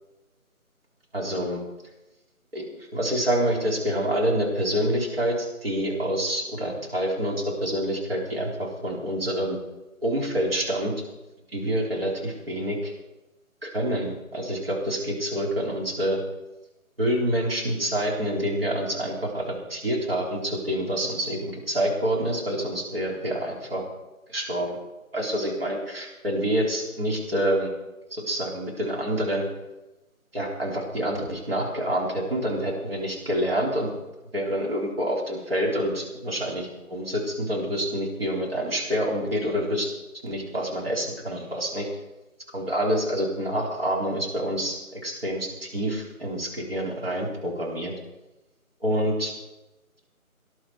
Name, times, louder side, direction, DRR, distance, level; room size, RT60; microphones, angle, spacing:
voice 1, 1.1-1.6 2.5-2.6 2.9-9.6 10.0-11.0 11.5-12.9 13.6-16.2 17.0-23.8 24.3-24.8 25.1-27.7 28.1-29.4 30.3-33.9 34.3-39.9 40.2-41.9 42.5-47.9 48.8-49.3, equal, 40° right, -2 dB, 4.1 m, -27 dB
19.0 x 11.0 x 4.8 m, 1.0 s
figure-of-eight pair, 170°, 43 cm